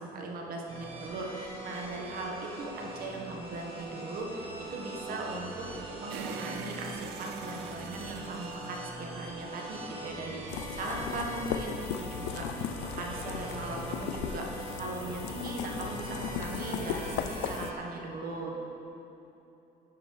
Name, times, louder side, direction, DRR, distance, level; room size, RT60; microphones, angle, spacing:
voice 1, 0.0-18.6, right 2 dB, 60° right, 0 dB, 1.5 m, -39 dB
sound 1, 0.7-17.7, right 2 dB, 35° right, 1.5 m, -42 dB
sound 2, 6.1-9.6, right 8 dB, 85° right, 0.5 m, -45 dB
sound 3, 10.5-17.7, left 9 dB, 85° left, 0.4 m, -37 dB
10.0 x 5.4 x 4.7 m, 3.0 s
cardioid pair, 110°, 17 cm